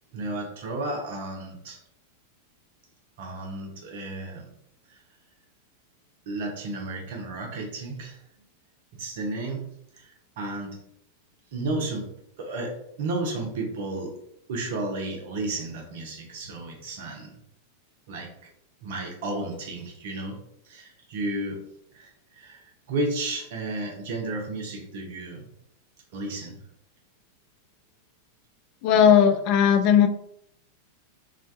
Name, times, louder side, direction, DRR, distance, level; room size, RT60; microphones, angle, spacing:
voice 1, 0.1-1.8 3.2-4.5 4.9-5.0 6.3-8.2 8.9-9.7 9.9-10.1 10.4-10.8 11.5-12.1 12.4-14.2 14.5-17.4 18.1-18.3 18.8-21.6 21.9-25.5 26.1-26.6, right 2 dB, 55° right, 1 dB, 0.7 m, -33 dB
voice 2, 28.8-30.1, left 8 dB, 45° left, 7 dB, 0.3 m, -17 dB
2.4 x 2.2 x 2.6 m, 0.73 s
figure-of-eight pair, 90°, 0 cm